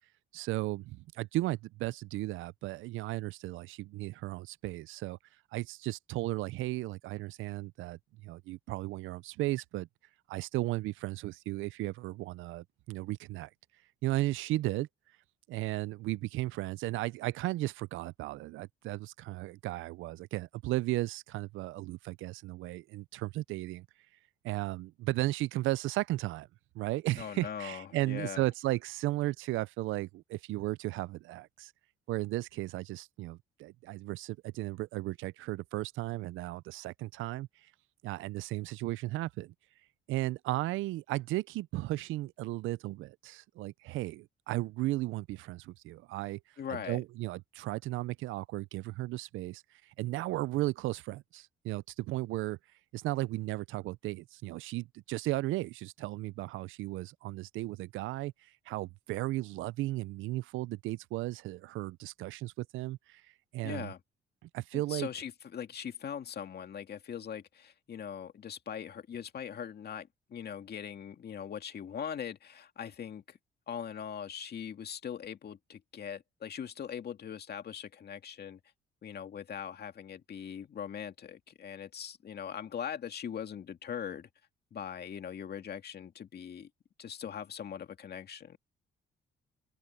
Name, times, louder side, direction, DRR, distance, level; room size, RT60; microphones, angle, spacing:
voice 1, 0.3-5.2 5.5-9.9 10.3-13.5 14.0-14.9 15.5-23.9 24.4-26.5 26.7-31.7 32.1-37.7 38.0-39.5 40.1-46.4 46.7-52.6 52.9-63.2 63.5-63.9 64.5-65.1, right 17 dB, 85° right, 0.5 m, -35 dB
voice 2, 27.2-28.5 46.6-47.0 63.6-64.0 64.7-73.4 73.7-78.6 79.0-84.3 84.7-86.7 87.0-88.6, left 8 dB, 55° left, 2.2 m, -41 dB
open air
cardioid pair, 90°, 20 cm